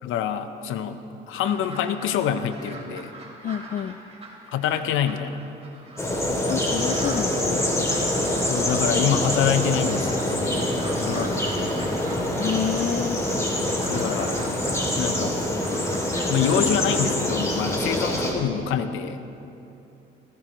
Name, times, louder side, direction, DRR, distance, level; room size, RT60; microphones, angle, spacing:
voice 1, 0.0-1.0 1.3-3.1 4.5-5.4 8.5-10.7 11.0-11.3 13.8-14.3 15.0-15.4 16.3-19.2, left 8 dB, 90° left, 10 dB, 0.8 m, -26 dB
sound 1, 1.3-17.1, right 2 dB, 30° right, 3.1 m, -42 dB
voice 2, 3.4-4.0 6.5-7.9 12.3-13.2, left 9 dB, 45° left, 10 dB, 0.4 m, -29 dB
sound 2, 6.0-18.3, left 1 dB, 15° left, 2.6 m, -25 dB
19.0 x 15.5 x 3.0 m, 2.9 s
cardioid pair, 90°, 20 cm